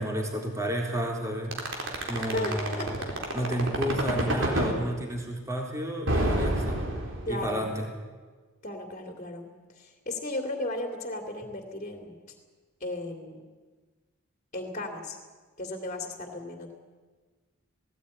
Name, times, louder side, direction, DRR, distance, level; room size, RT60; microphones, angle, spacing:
voice 1, 0.0-1.6 2.1-2.9 3.3-6.8 7.3-7.8, right 1 dB, 15° right, 1 dB, 3.6 m, -31 dB
sound 1, 1.5-4.7 6.1-7.5, right 1 dB, 60° right, 4.1 m, -27 dB
voice 2, 2.3-3.1 7.2-7.7 8.6-9.5 9.7-12.2 12.8-13.4 14.5-15.2 15.6-16.7, left 1 dB, 35° left, 4 dB, 2.8 m, -35 dB
18.5 x 17.0 x 9.8 m, 1.4 s
head